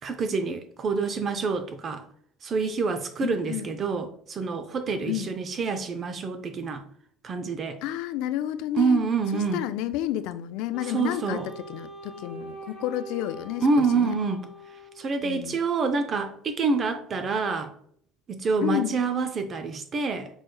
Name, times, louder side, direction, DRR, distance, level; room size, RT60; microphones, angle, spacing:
voice 1, 0.0-2.0 2.4-6.8 7.2-7.8 8.8-9.7 10.9-11.5 13.6-14.4 15.0-17.7 18.3-20.3, right 4 dB, 35° right, 0.5 m, -27 dB
voice 2, 3.2-3.7 5.1-5.3 7.8-9.0 9.3-14.2 15.2-15.6 18.6-19.0, left 12 dB, 75° left, 0.3 m, -31 dB
Wind instrument woodwind instrument, 10.7-15.3, right 1 dB, 5° left, 1.1 m, -43 dB
6.3 x 3.1 x 2.2 m
cardioid pair, 130°, 0 cm